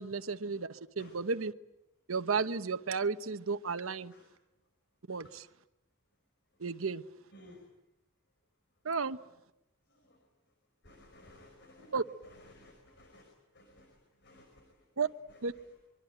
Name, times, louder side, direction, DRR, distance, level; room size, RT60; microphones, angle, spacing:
voice 1, 0.0-1.5 2.1-4.1 5.1-5.5 6.6-7.0 8.8-9.2 11.9-12.0 15.0-15.1 15.4-15.5, right 5 dB, 70° right, 10 dB, 1.0 m, -33 dB
voice 2, 10.8-11.9 12.2-14.6, left 1 dB, 55° left, 4 dB, 5.1 m, -57 dB
24.5 x 23.5 x 9.2 m, 0.91 s
head